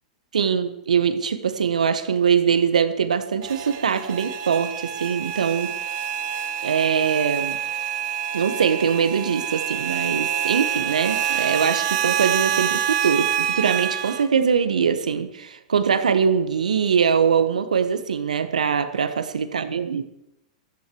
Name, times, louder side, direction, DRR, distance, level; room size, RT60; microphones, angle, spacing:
voice 1, 0.3-5.7 6.6-7.6 8.3-20.0, right 6 dB, 80° right, 10 dB, 1.5 m, -22 dB
sound 1, 3.4-14.2, right 9 dB, 50° right, 1.7 m, -26 dB
16.0 x 14.0 x 4.8 m, 0.83 s
hypercardioid pair, 105°, 4 cm